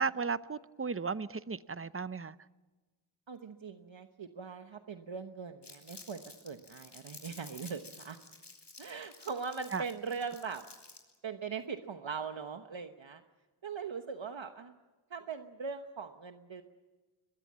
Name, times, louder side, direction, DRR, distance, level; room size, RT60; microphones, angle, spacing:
voice 1, 0.0-2.3 9.7-9.8, right 5 dB, 30° right, 0.7 m, -35 dB
voice 2, 3.3-8.2 8.8-10.6 11.2-13.2 13.6-14.7 15.1-16.6, right 5 dB, 65° right, 1.1 m, -41 dB
Crumpling crinkling, 5.6-11.2, left 3 dB, 55° left, 4.5 m, -52 dB
23.0 x 21.5 x 7.5 m
wide cardioid pair, 70°, 49 cm